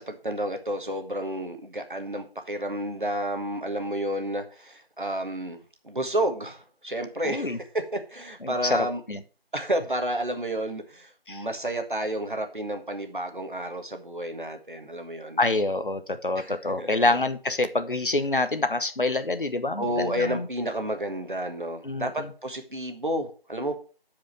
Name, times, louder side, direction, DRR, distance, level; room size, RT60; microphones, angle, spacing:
voice 1, 0.0-7.6 7.9-9.0 9.5-15.4 16.4-17.1 19.8-23.9, right 1 dB, 55° right, 6 dB, 1.6 m, -31 dB
voice 2, 7.2-7.6 8.4-9.2 11.3-11.4 15.4-20.5 21.8-22.3, left 2 dB, 55° left, 10 dB, 1.0 m, -26 dB
9.2 x 5.1 x 6.2 m, 0.37 s
figure-of-eight pair, 170°, 30 cm